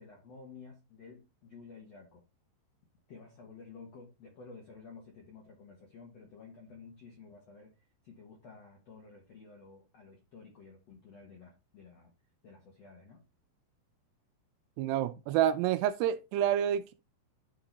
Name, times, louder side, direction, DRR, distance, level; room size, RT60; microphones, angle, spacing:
voice 1, 0.0-2.2 3.1-7.7 8.0-12.1 12.4-13.2, left 4 dB, 70° left, 1.5 m, -52 dB
voice 2, 14.8-16.9, right 11 dB, 85° right, 2.5 m, -28 dB
11.0 x 3.8 x 3.9 m
omnidirectional pair, 5.0 m